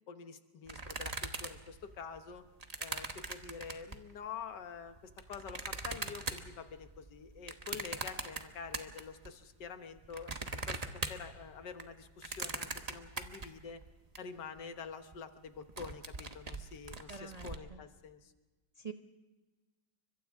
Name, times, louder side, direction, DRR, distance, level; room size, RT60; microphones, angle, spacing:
voice 1, 0.1-2.4 2.8-10.4 10.7-13.8 14.2-18.3, left 6 dB, 60° left, 8 dB, 1.8 m, -47 dB
sound 1, 0.7-4.1 4.8-9.3 9.6-14.2 14.6-14.7 14.9-15.2 15.5-17.6, right 3 dB, 25° right, 0.9 m, -41 dB
voice 2, 17.1-17.8 18.8-18.9, right 5 dB, 60° right, 4 dB, 0.4 m, -46 dB
30.0 x 24.5 x 3.6 m, 1.2 s
omnidirectional pair, 2.2 m